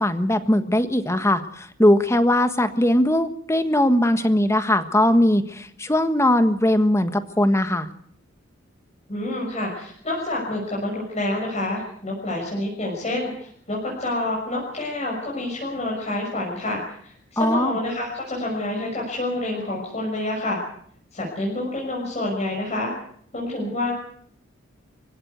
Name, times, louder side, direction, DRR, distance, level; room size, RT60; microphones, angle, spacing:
voice 1, 0.0-7.9 17.4-17.8, left 1 dB, 15° left, 10 dB, 1.4 m, -20 dB
voice 2, 9.1-20.6 21.1-22.9 23.3-23.9, left 1 dB, 35° left, -3 dB, 6.2 m, -28 dB
25.0 x 16.5 x 8.1 m, 0.65 s
head